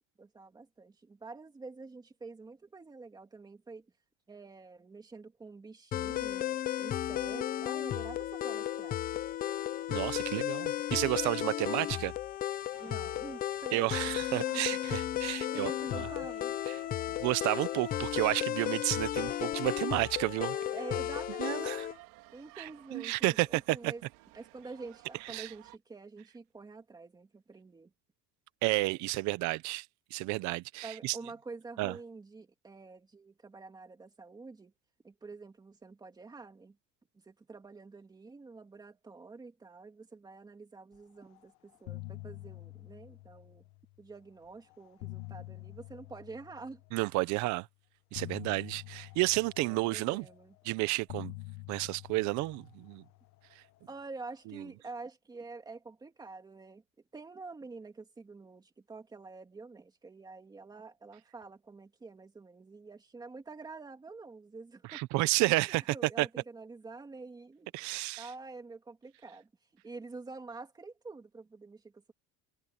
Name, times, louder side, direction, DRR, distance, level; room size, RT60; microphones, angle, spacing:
voice 1, 0.2-3.9 4.3-9.0 11.7-12.1 12.8-14.1 14.5-14.6 15.4-16.6 20.7-21.8 22.3-24.0 24.3-27.9 30.8-34.7 35.0-36.8 37.1-43.7 44.0-46.8 49.6-50.5 53.9-56.8 57.1-65.0 65.7-67.7 68.2-72.1, right 3 dB, 10° right, 2.1 m, -47 dB
sound 1, 5.9-22.0, left 12 dB, 25° left, 0.5 m, -34 dB
voice 2, 9.9-12.1 13.7-16.1 17.2-20.6 21.4-21.9 22.6-23.9 25.3-25.5 28.6-29.9 30.1-31.2 31.8-31.9 46.9-47.7 48.1-50.2 50.7-51.3 51.7-53.0 64.9-66.3 67.7-68.3, right 21 dB, 60° right, 0.8 m, -31 dB
sound 2, 12.7-25.8, right 20 dB, 90° right, 3.3 m, -56 dB
sound 3, 41.2-41.4 41.7-44.0 44.7-47.1 48.1-50.6 51.1-53.7, left 21 dB, 60° left, 1.2 m, -47 dB
cardioid pair, 180°, 32 cm